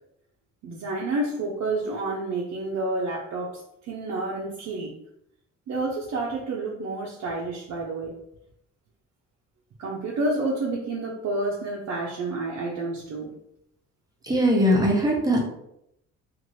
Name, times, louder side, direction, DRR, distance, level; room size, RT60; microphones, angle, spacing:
voice 1, 0.6-4.9 5.7-8.2 9.8-13.3, right 2 dB, 65° right, -3 dB, 0.6 m, -29 dB
voice 2, 14.2-15.4, equal, 10° right, -2 dB, 0.9 m, -20 dB
2.6 x 2.5 x 3.1 m, 0.78 s
cardioid pair, 90°, 30 cm